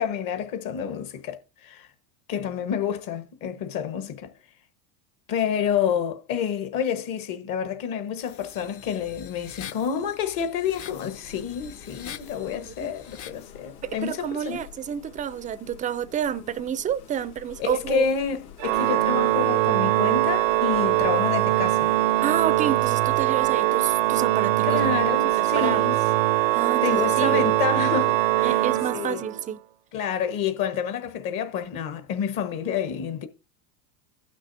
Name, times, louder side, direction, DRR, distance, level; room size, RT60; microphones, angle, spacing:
voice 1, 0.0-1.9 2.3-4.3 5.3-14.6 17.6-21.9 24.6-26.0 26.8-28.6 28.9-29.2 29.9-33.3, left 7 dB, 50° left, 1.2 m, -29 dB
sound 1, 8.2-13.5, left 9 dB, 35° left, 0.6 m, -44 dB
sound 2, 10.8-28.6, left 7 dB, 80° left, 2.6 m, -48 dB
voice 2, 13.8-18.1 22.2-24.8 25.4-25.8 26.5-27.4 28.4-29.6, right 9 dB, 20° right, 0.4 m, -29 dB
Organ, 18.6-29.5, right 16 dB, 65° right, 0.5 m, -22 dB
16.0 x 6.1 x 2.6 m
hypercardioid pair, 100°, 44 cm